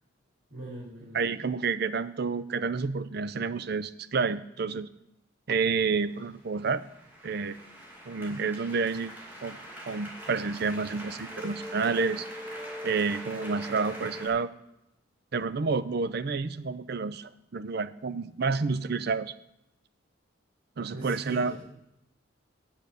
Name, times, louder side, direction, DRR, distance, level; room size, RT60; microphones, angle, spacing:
voice 1, 0.5-1.2 20.9-21.6, right 1 dB, 80° right, -7 dB, 3.7 m, -40 dB
voice 2, 1.1-4.9 5.5-6.8 7.2-7.6 8.1-9.6 9.9-12.3 12.8-14.5 15.3-19.3 20.8-21.5, right 4 dB, 50° right, 13 dB, 0.5 m, -29 dB
sound 1, 6.2-14.3, equal, 10° right, 2.4 m, -42 dB
9.1 x 7.3 x 6.7 m, 0.83 s
head